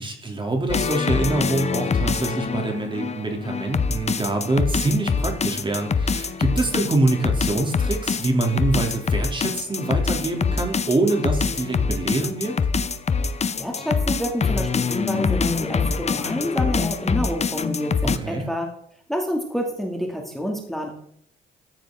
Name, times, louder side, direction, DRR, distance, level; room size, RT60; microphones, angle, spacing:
voice 1, 0.0-12.5 18.2-18.5, right 2 dB, 25° right, 3 dB, 3.2 m, -25 dB
sound 1, 0.7-18.2, left 5 dB, 35° left, 0.8 m, -24 dB
voice 2, 13.2-18.7 19.1-20.9, equal, ahead, 0 dB, 2.6 m, -28 dB
14.0 x 9.2 x 3.8 m, 0.65 s
cardioid pair, 90°, 20 cm